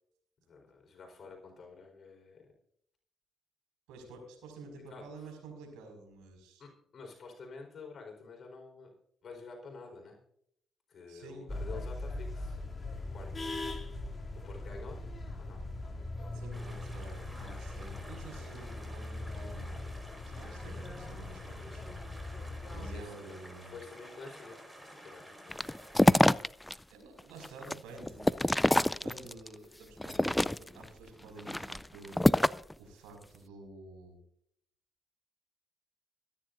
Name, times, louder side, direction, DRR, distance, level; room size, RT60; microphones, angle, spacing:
voice 1, 0.5-2.5 4.9-5.3 6.6-8.9 9.2-10.2 10.9-12.6 12.9-13.5 14.4-15.0 15.4-15.6 19.0-19.1 22.7-23.3 23.7-24.6 24.8-25.6, left 4 dB, 55° left, 1 dB, 4.5 m, -49 dB
voice 2, 3.9-6.6 11.1-11.5 16.3-19.8 20.3-22.2 22.7-23.8 26.9-32.3 32.8-34.2, right 3 dB, 85° right, 2 dB, 5.7 m, -50 dB
sound 1, 11.5-23.0, left 2 dB, 30° left, 2.9 m, -40 dB
sound 2, 16.5-26.2, equal, 10° right, 4.7 m, -51 dB
sound 3, 25.5-26.8 27.2-29.5 30.0-30.9 31.4-32.7, left 1 dB, 10° left, 0.4 m, -26 dB
25.5 x 10.0 x 2.6 m, 0.70 s
supercardioid pair, 55°, 0 cm